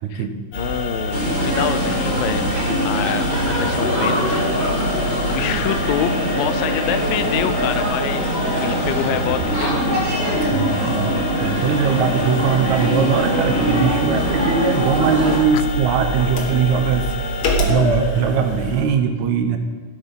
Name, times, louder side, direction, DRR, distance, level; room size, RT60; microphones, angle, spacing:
voice 1, 0.0-0.5 10.5-17.1 17.6-19.6, right 6 dB, 75° right, 6 dB, 1.9 m, -20 dB
sound 1, 0.5-18.8, left 1 dB, 55° left, 1.7 m, -25 dB
voice 2, 0.6-2.5 2.8-4.5 5.2-10.1, left 9 dB, 85° left, 11 dB, 2.4 m, -26 dB
sound 2, 1.1-15.4, equal, 20° right, 2.5 m, -23 dB
sound 3, 7.9-12.0, left 1 dB, 35° left, 2.3 m, -36 dB
15.0 x 8.2 x 5.3 m, 1.4 s
omnidirectional pair, 4.0 m